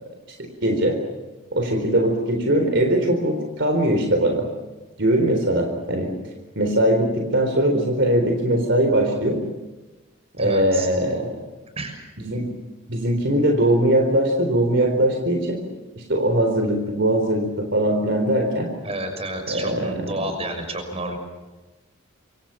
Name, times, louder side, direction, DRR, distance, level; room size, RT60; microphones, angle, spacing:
voice 1, 0.4-1.0 1.5-4.5 5.0-6.1 6.6-9.4 10.4-11.3 12.2-12.5 12.9-15.6 16.0-18.7 19.5-20.1, right 1 dB, 60° right, 4 dB, 4.2 m, -21 dB
voice 2, 10.4-10.9 11.8-11.9 18.8-21.2, right 1 dB, 30° right, 6 dB, 6.2 m, -30 dB
28.0 x 25.0 x 5.9 m, 1.2 s
head